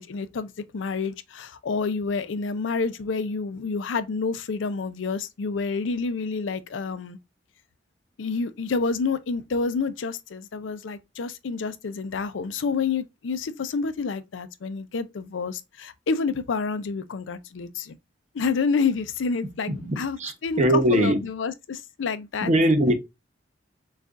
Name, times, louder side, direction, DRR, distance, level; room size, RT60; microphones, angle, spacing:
voice 1, 0.0-7.2 8.2-17.9 18.3-22.5, left 4 dB, 90° left, 0.5 m, -28 dB
voice 2, 19.8-20.3 20.6-21.2 22.4-22.9, right 1 dB, 40° right, 0.8 m, -20 dB
6.4 x 2.4 x 2.4 m
head